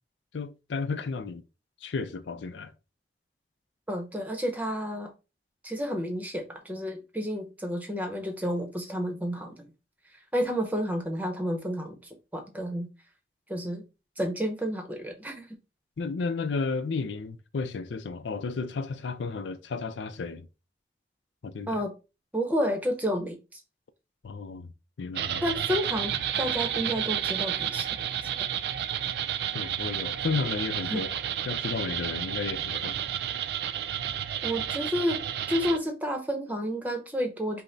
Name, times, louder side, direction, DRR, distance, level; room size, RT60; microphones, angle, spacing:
voice 1, 0.3-1.4 1.8-2.7 16.0-20.5 21.4-21.8 24.2-24.7 25.0-25.4 29.5-33.0, left 4 dB, 90° left, 0.5 m, -33 dB
voice 2, 3.9-5.1 5.6-9.6 10.3-12.0 12.3-12.9 13.5-13.8 14.2-15.5 21.7-21.9 22.3-23.6 25.4-27.9 30.9-31.0 34.4-35.2 35.5-37.6, equal, 10° right, 0.8 m, -30 dB
sound 1, 25.1-35.8, right 10 dB, 65° right, 0.4 m, -31 dB
5.5 x 2.1 x 3.9 m
head